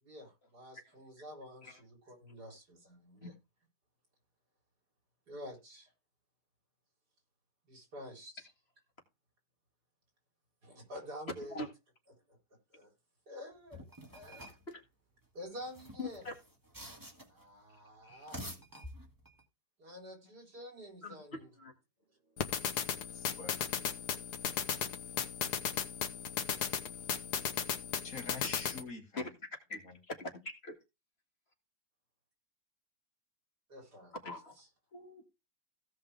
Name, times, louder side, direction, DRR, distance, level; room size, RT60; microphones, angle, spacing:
voice 1, 0.0-3.3 5.3-5.9 7.7-8.4 10.6-11.7 12.3-12.4 12.7-12.9 13.3-13.8 14.1-14.5 15.3-16.2 17.3-18.4 19.8-21.5 22.2-22.4 33.7-34.1, equal, 80° right, 4.3 m, -49 dB
sound 1, 13.7-14.7 15.6-17.4 18.1-19.4, equal, 15° right, 1.6 m, -48 dB
voice 2, 16.0-16.3 18.0-18.3 21.0-21.2 21.6-21.7 29.2-29.3 29.7-29.8 30.1-30.8 34.2-34.6, left 2 dB, 40° left, 2.1 m, -42 dB
sound 2, 22.4-28.8, left 7 dB, 80° left, 1.7 m, -36 dB
voice 3, 23.1-23.7 28.0-29.3 29.8-30.0 34.9-35.2, left 3 dB, 60° left, 2.7 m, -46 dB
16.5 x 5.6 x 3.3 m
omnidirectional pair, 1.7 m